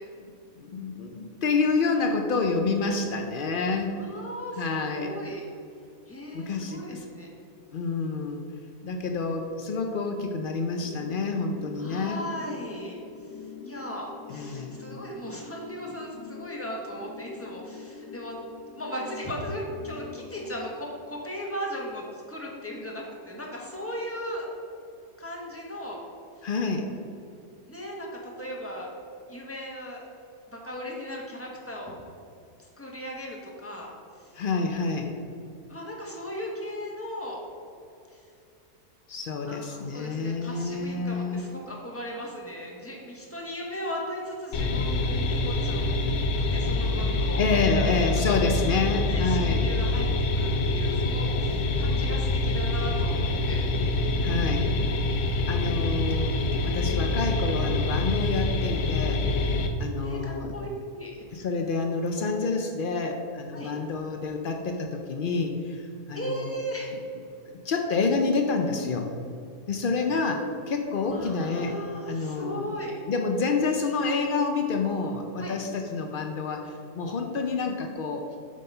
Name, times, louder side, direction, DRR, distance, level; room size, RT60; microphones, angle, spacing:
voice 1, 0.2-4.0 4.6-5.1 6.3-7.1 7.7-8.4 8.8-12.2 14.3-14.8 26.4-26.9 34.3-35.1 39.1-41.4 47.4-49.6 54.2-54.7 55.5-56.4 56.6-59.3 59.8-60.5 61.3-66.5 67.6-69.1 69.7-71.8 72.1-72.7 73.1-78.3, left 4 dB, 90° left, 3 dB, 0.4 m, -28 dB
voice 2, 4.0-5.5 6.1-7.3 11.8-13.0 13.6-18.4 18.8-24.5 25.2-26.0 26.4-26.5 27.7-28.9 29.3-30.0 30.5-31.9 32.6-33.9 34.2-34.3 35.7-37.4 38.1-38.2 39.5-45.8 46.4-50.1 50.3-53.7 59.7-61.3 63.5-63.7 66.1-66.9 71.0-73.0 75.4-75.6, equal, 10° left, -2 dB, 1.2 m, -37 dB
sound 1, 10.8-20.8, left 5 dB, 25° left, 0.7 m, -44 dB
sound 2, 44.5-59.7, left 2 dB, 60° left, 0.9 m, -26 dB
7.8 x 4.9 x 5.4 m, 2.6 s
omnidirectional pair, 1.7 m